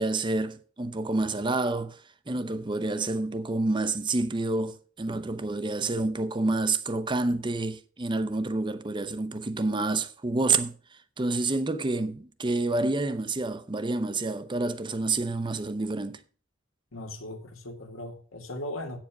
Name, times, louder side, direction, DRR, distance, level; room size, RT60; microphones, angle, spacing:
voice 1, 0.0-2.0 2.3-10.7 11.2-16.2, right 2 dB, 25° right, 0.6 m, -28 dB
voice 2, 16.9-19.0, left 1 dB, 85° left, 1.9 m, -38 dB
8.5 x 7.3 x 6.0 m
head